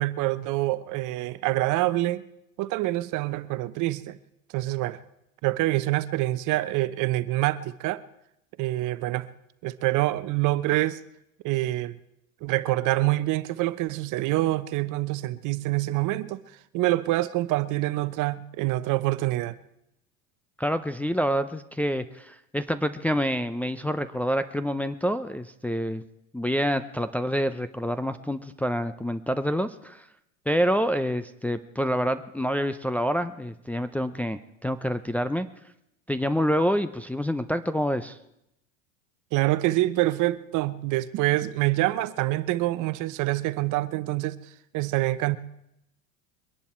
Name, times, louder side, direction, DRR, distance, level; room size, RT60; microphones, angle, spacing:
voice 1, 0.0-2.2 2.6-4.2 4.5-5.0 5.4-8.0 8.6-9.3 9.6-11.0 11.4-12.0 12.4-16.4 16.7-19.5 39.3-44.4 44.7-45.4, right 17 dB, 50° right, 14 dB, 0.9 m, -26 dB
voice 2, 20.6-26.0 26.3-30.1 30.5-35.5 36.1-38.2, equal, 5° left, 8 dB, 0.6 m, -27 dB
23.0 x 10.5 x 4.5 m, 0.82 s
hypercardioid pair, 95°, 39 cm